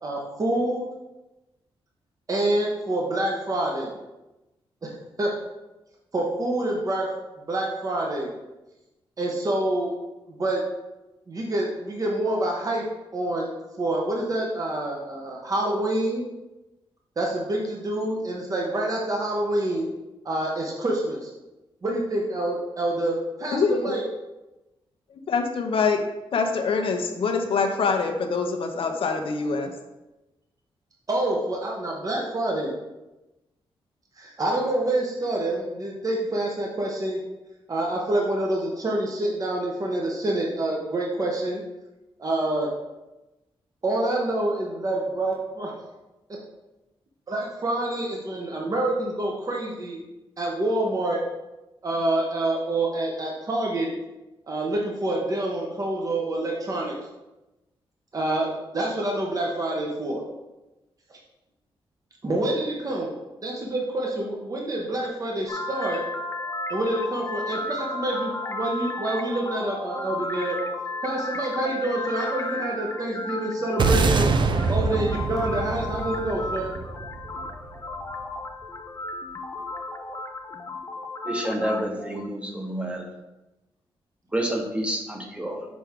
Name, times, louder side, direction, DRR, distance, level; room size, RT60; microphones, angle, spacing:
voice 1, 0.0-0.8 2.3-4.0 4.8-4.9 5.2-5.3 6.1-7.1 7.5-8.3 9.2-9.9 10.3-10.6 11.3-12.8 13.1-13.5 13.8-16.2 17.2-19.9 20.2-21.3 21.8-24.0 31.1-32.7 34.2-37.2 37.7-41.6 42.2-42.7 43.8-45.7 46.3-46.4 47.3-50.0 50.4-51.2 51.8-53.9 54.5-57.0 58.1-60.2 62.2-63.1 63.4-66.0 66.7-70.6 71.0-74.3 74.7-76.7, right 1 dB, 35° right, -2 dB, 1.1 m, -27 dB
voice 2, 23.5-23.9 25.3-26.0 26.3-29.7, left 4 dB, 65° left, 4 dB, 0.8 m, -24 dB
sound 1, 65.5-82.3, left 2 dB, 30° left, 0.5 m, -34 dB
sound 2, 73.8-78.2, right 4 dB, 50° right, 0.5 m, -25 dB
voice 3, 81.3-83.1 84.3-85.7, right 1 dB, 10° right, 1 dB, 1.1 m, -29 dB
6.2 x 4.5 x 3.6 m, 1.0 s
cardioid pair, 95°, 10 cm